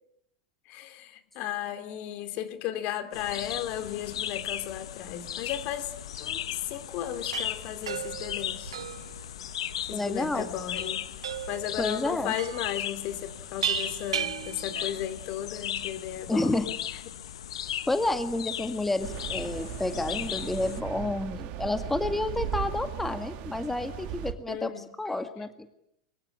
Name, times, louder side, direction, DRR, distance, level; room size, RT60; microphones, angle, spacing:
voice 1, 0.7-5.9 6.2-8.8 9.9-11.0 11.5-16.8 17.0-17.1 24.5-24.9, left 11 dB, 45° left, 10 dB, 2.9 m, -35 dB
sound 1, 3.1-20.8, left 10 dB, 70° left, 1.3 m, -37 dB
sound 2, 7.1-15.2, right 9 dB, 75° right, 1.2 m, -36 dB
voice 2, 9.9-10.5 11.8-12.3 16.3-16.7 17.9-25.7, left 2 dB, 5° left, 8 dB, 1.9 m, -30 dB
sound 3, 19.0-24.3, right 11 dB, 45° right, 2.7 m, -37 dB
23.5 x 22.5 x 9.9 m, 0.76 s
hypercardioid pair, 100°, 3 cm